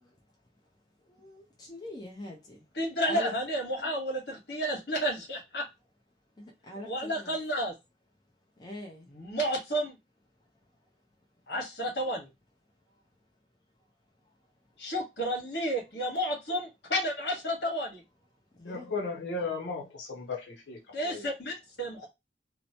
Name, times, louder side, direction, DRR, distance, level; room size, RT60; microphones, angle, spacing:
voice 1, 1.1-2.6 3.0-3.4 3.8-3.9 6.4-7.4 8.6-9.1 18.6-18.9, left 1 dB, 25° left, 0.6 m, -43 dB
voice 2, 2.7-5.6 6.8-7.7 9.1-9.9 11.5-12.3 14.8-18.0 20.9-22.1, equal, 70° left, 1.3 m, -31 dB
voice 3, 18.6-21.3, left 3 dB, 85° left, 0.7 m, -36 dB
2.9 x 2.1 x 2.7 m
head